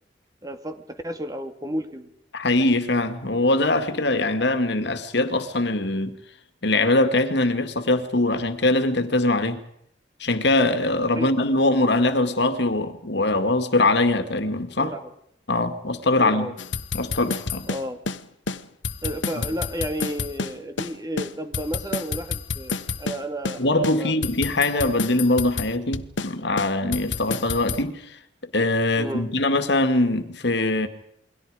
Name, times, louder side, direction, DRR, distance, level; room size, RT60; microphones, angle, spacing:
voice 1, 0.4-2.1 11.1-11.3 14.8-15.1 16.2-16.5 17.7-18.0 19.0-24.2 29.0-29.3, equal, 20° right, 2.4 m, -32 dB
voice 2, 2.3-6.1 6.6-9.6 10.2-14.9 15.5-16.5 16.9-17.7 19.4-19.5 23.6-28.0 28.5-30.9, left 2 dB, 65° left, 2.2 m, -22 dB
sound 1, 16.6-18.2 18.5-18.6 18.8-20.9 21.2-23.2 23.4-23.6 23.8-26.3 26.6-27.8, left 4 dB, 85° left, 1.2 m, -29 dB
29.0 x 22.5 x 5.1 m
head